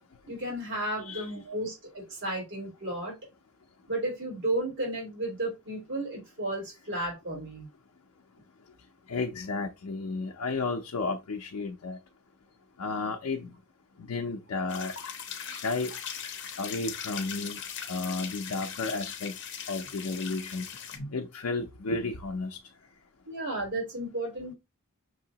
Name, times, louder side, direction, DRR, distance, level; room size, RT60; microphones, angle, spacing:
voice 1, 0.3-3.2 3.9-7.7 20.9-21.1 23.3-24.6, right 1 dB, 60° right, 3.0 m, -33 dB
voice 2, 1.0-1.3 9.1-12.0 12.8-13.5 14.0-14.9 15.4-15.9 16.6-17.6 17.9-19.3 19.7-20.6 21.1-22.6, left 3 dB, 85° left, 0.5 m, -32 dB
sound 1, 14.7-21.0, left 8 dB, 55° left, 0.8 m, -39 dB
6.1 x 2.8 x 2.8 m
head